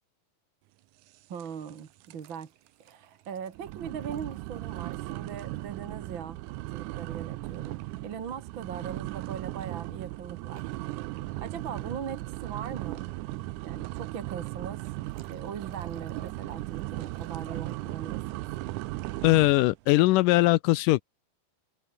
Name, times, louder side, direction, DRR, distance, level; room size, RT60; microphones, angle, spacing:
voice 1, 1.3-2.5 2.8-6.4 6.7-10.7 11.4-13.1 13.6-14.9 15.3-18.4, right 7 dB, 45° right, 1.9 m, -40 dB
sound 1, 1.4-1.8 2.0-2.4 2.9-3.0 3.5-19.7, right 18 dB, 85° right, 1.7 m, -37 dB
sound 2, 1.5-5.3 5.6-5.7 5.9-6.0 7.7-8.1 9.0-9.2 10.6-10.8 14.6-17.7 19.2-19.7, right 9 dB, 65° right, 3.9 m, -57 dB
voice 2, 19.2-21.0, left 19 dB, 80° left, 2.0 m, -21 dB
omnidirectional pair, 4.2 m